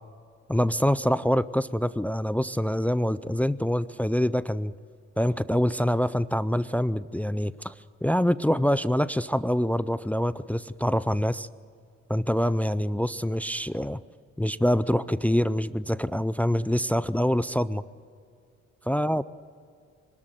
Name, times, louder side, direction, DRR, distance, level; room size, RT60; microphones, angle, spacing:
voice 1, 0.5-4.7 5.2-7.7 8.0-11.5 12.1-14.0 14.4-17.8 18.9-19.2, equal, 5° left, 16 dB, 0.4 m, -25 dB
24.0 x 13.0 x 9.1 m, 2.2 s
cardioid pair, 90°, 30 cm